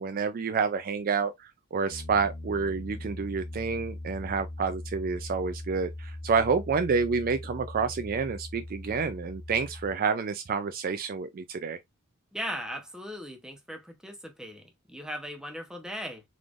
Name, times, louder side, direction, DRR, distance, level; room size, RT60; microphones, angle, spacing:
voice 1, 0.0-11.8, right 5 dB, 40° right, 0.3 m, -29 dB
Piano, 1.9-10.0, left 1 dB, 30° left, 0.6 m, -40 dB
voice 2, 12.3-16.2, equal, 5° right, 0.8 m, -38 dB
4.0 x 3.2 x 2.4 m
head